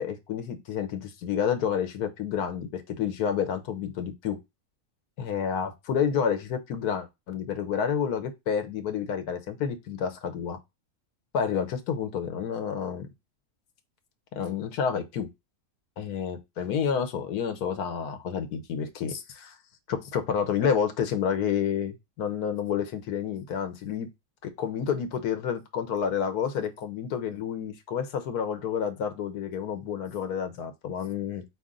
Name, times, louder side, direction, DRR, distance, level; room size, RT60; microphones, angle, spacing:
voice 1, 0.0-4.4 5.2-10.6 11.3-13.1 14.3-15.3 16.0-19.5 19.9-24.1 24.4-31.4, left 7 dB, 85° left, 1.3 m, -29 dB
4.2 x 3.0 x 3.7 m
omnidirectional pair, 1.6 m